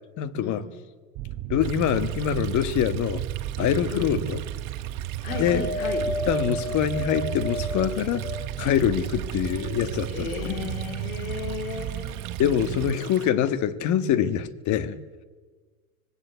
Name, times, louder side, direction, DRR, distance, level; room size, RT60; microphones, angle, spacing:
voice 1, 0.2-0.6 1.5-3.2 3.6-4.4 5.3-5.6 6.3-8.3 8.6-10.5 12.4-15.0, left 9 dB, 45° left, 1.6 m, -25 dB
sound 1, 1.2-12.9, right 13 dB, 45° right, 0.8 m, -33 dB
Stream, 1.6-13.3, right 15 dB, 65° right, 1.6 m, -44 dB
voice 2, 5.2-6.1 10.1-12.2, left 6 dB, 75° left, 4.4 m, -34 dB
Wind, 5.3-8.8 9.4-10.4 11.2-11.3, left 1 dB, 25° left, 2.6 m, -33 dB
25.5 x 19.0 x 8.1 m
hypercardioid pair, 100°, 42 cm